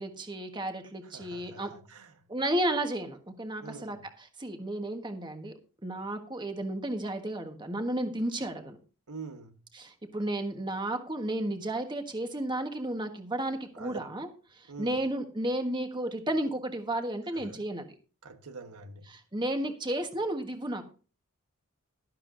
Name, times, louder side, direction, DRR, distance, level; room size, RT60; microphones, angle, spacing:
voice 1, 0.0-1.7 2.3-5.5 5.8-8.8 9.7-17.9 19.1-20.8, right 1 dB, 20° right, 1.4 m, -33 dB
voice 2, 1.1-2.1 3.6-4.0 9.1-9.6 13.8-14.0 14.7-15.0 17.3-17.5 18.2-19.1, right 4 dB, 85° right, 1.3 m, -44 dB
12.0 x 11.5 x 2.6 m
head